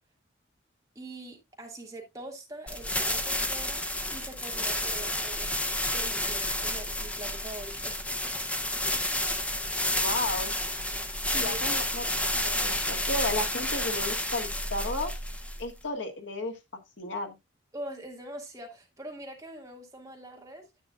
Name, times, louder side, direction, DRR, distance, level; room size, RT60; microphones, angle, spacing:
voice 1, 1.0-3.8 4.1-5.6 5.9-8.0 11.5-11.7 17.7-20.7, right 1 dB, 15° right, 2.1 m, -43 dB
sound 1, 2.7-15.8, left 1 dB, 5° left, 0.8 m, -30 dB
voice 2, 10.0-10.5 11.3-12.0 12.3-15.1 15.6-16.5 17.0-17.3, left 2 dB, 70° left, 1.7 m, -33 dB
9.9 x 8.9 x 2.4 m
head